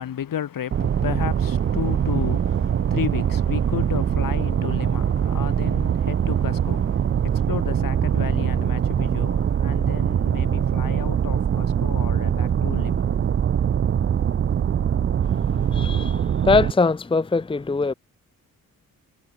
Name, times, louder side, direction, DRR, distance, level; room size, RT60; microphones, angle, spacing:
voice 1, 0.0-13.1, left 9 dB, 75° left, 3.9 m, -33 dB
sound 1, 0.7-16.7, right 8 dB, 35° right, 0.5 m, -22 dB
voice 2, 15.2-17.9, left 3 dB, 15° left, 0.8 m, -22 dB
wide cardioid pair, 140°, 34 cm